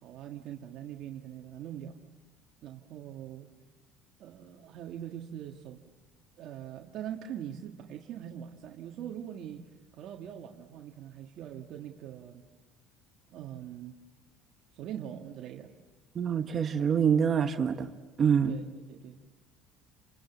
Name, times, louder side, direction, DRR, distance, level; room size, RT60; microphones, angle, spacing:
voice 1, 0.0-2.0 2.6-3.5 4.2-5.8 6.4-9.6 9.9-12.5 13.3-14.0 14.7-15.7 18.5-19.2, right 10 dB, 55° right, 1 dB, 1.8 m, -42 dB
voice 2, 16.1-17.9 18.2-18.6, right 7 dB, 35° right, 7 dB, 1.1 m, -26 dB
29.0 x 27.0 x 7.4 m, 1.2 s
cardioid pair, 130°, 0 cm